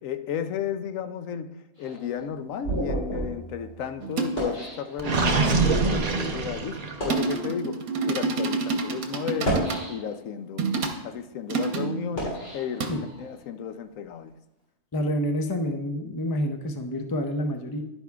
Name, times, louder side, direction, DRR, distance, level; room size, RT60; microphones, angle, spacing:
voice 1, 0.0-10.7 11.0-14.3, left 8 dB, 70° left, 0.9 m, -33 dB
sound 1, 1.8-5.5 6.2-6.3 6.8-7.4 8.2-8.3 9.2-10.3 10.9-13.4, right 1 dB, 55° left, 3.6 m, -33 dB
sound 2, 4.0-4.6 7.1-10.0 10.6-11.0 11.5-12.2 12.8-13.0, right 4 dB, 85° right, 1.4 m, -28 dB
Gurgling, 5.0-7.1, right 3 dB, 45° right, 0.5 m, -24 dB
voice 2, 14.9-17.8, equal, 35° left, 0.3 m, -28 dB
11.0 x 9.6 x 2.3 m
omnidirectional pair, 1.5 m